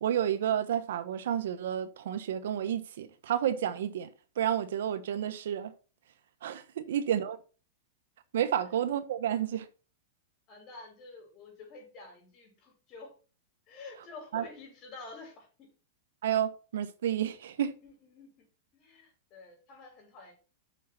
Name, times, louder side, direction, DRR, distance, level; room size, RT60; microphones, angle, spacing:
voice 1, 0.0-4.1 4.4-5.7 6.4-7.4 8.3-9.7 14.3-14.5 16.2-17.8, right 10 dB, 75° right, 1.2 m, -30 dB
voice 2, 10.5-13.1 13.7-15.7 17.8-18.5 18.7-20.3, left 3 dB, 35° left, 5.7 m, -49 dB
6.6 x 6.5 x 6.0 m
supercardioid pair, 145°, 0 cm